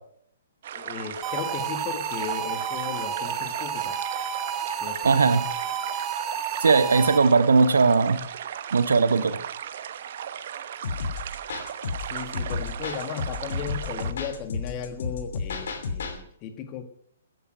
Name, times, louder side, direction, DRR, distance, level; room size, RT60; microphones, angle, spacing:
sound 1, 0.6-14.1, right 9 dB, 50° right, 1.0 m, -37 dB
voice 1, 0.7-4.0 4.8-5.1 12.1-16.9, left 8 dB, 30° left, 8 dB, 1.9 m, -36 dB
sound 2, 1.2-7.5, right 8 dB, 20° right, 1.1 m, -31 dB
voice 2, 5.0-5.5 6.6-8.2 8.7-9.4, right 4 dB, 70° right, 12 dB, 1.3 m, -19 dB
sound 3, 10.8-16.2, left 4 dB, 55° left, 2.8 m, -32 dB
15.0 x 11.0 x 6.1 m, 0.67 s
figure-of-eight pair, 120°, 0 cm